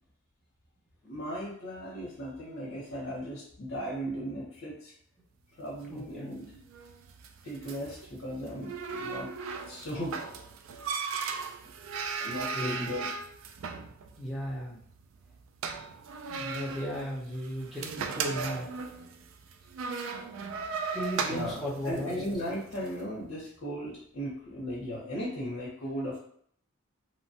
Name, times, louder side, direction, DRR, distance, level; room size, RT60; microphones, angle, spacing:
voice 1, 1.0-4.9 5.6-6.6 7.4-9.3 9.7-10.2 12.2-13.1 20.8-20.9 21.3-26.2, equal, 60° left, -6 dB, 0.7 m, -37 dB
sound 1, 5.7-22.9, right 5 dB, 70° right, 0.3 m, -38 dB
voice 2, 5.9-6.4 12.5-12.9 14.2-14.8 16.2-18.7 20.9-22.2, equal, ahead, -6 dB, 0.6 m, -36 dB
3.0 x 2.1 x 2.7 m, 0.63 s
head